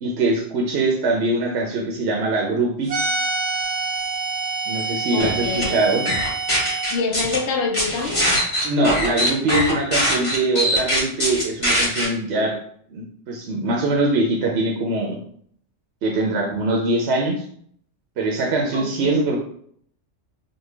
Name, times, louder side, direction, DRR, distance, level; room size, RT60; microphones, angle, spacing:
voice 1, 0.0-2.9 4.7-6.0 8.6-12.6 12.9-15.2 16.0-17.5 18.2-19.4, right 2 dB, 65° right, 0 dB, 0.8 m, -22 dB
sound 1, 2.9-7.0, right 3 dB, 35° right, 0.8 m, -26 dB
voice 2, 5.1-5.8 6.9-8.4 18.7-19.2, left 4 dB, 70° left, 3 dB, 0.8 m, -26 dB
sound 2, 5.2-5.6 6.0-7.4 7.7-12.0, equal, 25° left, 1.3 m, -21 dB
3.2 x 2.2 x 3.2 m, 0.63 s
omnidirectional pair, 1.3 m